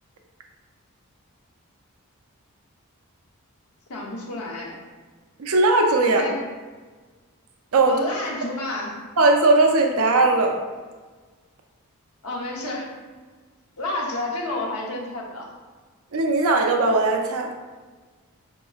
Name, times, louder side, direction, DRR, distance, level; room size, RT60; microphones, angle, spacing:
voice 1, 3.9-4.8 6.2-6.4 7.8-9.0 12.2-13.0 13.8-15.5, left 2 dB, 80° left, -1 dB, 0.9 m, -30 dB
voice 2, 5.4-6.2 7.7-8.0 9.2-10.6 16.1-17.5, right 2 dB, 70° right, 3 dB, 0.5 m, -18 dB
5.2 x 2.8 x 2.3 m, 1.4 s
head